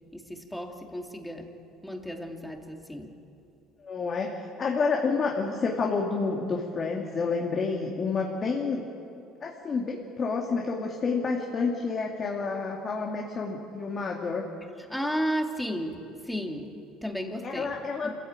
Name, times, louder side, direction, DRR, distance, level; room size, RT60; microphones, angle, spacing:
voice 1, 0.1-1.5 1.8-3.1 14.9-17.8 18.0-18.2, equal, 5° left, 2 dB, 2.6 m, -33 dB
voice 2, 3.8-8.8 9.4-14.5 17.4-18.1, left 4 dB, 35° left, 0 dB, 2.6 m, -29 dB
27.0 x 15.5 x 9.0 m, 2.7 s
cardioid pair, 115°, 0 cm